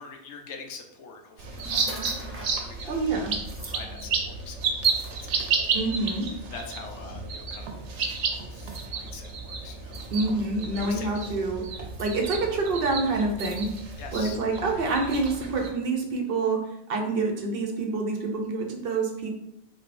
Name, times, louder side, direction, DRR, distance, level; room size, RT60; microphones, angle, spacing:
voice 1, 0.0-10.4 10.7-11.1 14.0-14.4, left 4 dB, 85° left, 3 dB, 1.0 m, -45 dB
sound 1, 1.4-15.7, right 5 dB, 85° right, 1.0 m, -32 dB
sound 2, 1.6-2.6 3.4-3.8 4.8-5.7 6.4-6.5 8.6-8.9 9.9-10.4 11.7-12.1 13.4-14.0, right 1 dB, 20° right, 0.3 m, -43 dB
voice 2, 2.9-3.3 5.7-6.3 10.1-11.6 12.0-13.7 14.1-16.6 16.9-19.3, right 3 dB, 60° right, 2 dB, 0.8 m, -27 dB
Musical instrument, 3.1-12.9, equal, 20° left, 1.1 m, -47 dB
3.9 x 3.3 x 2.5 m, 0.82 s
omnidirectional pair, 1.2 m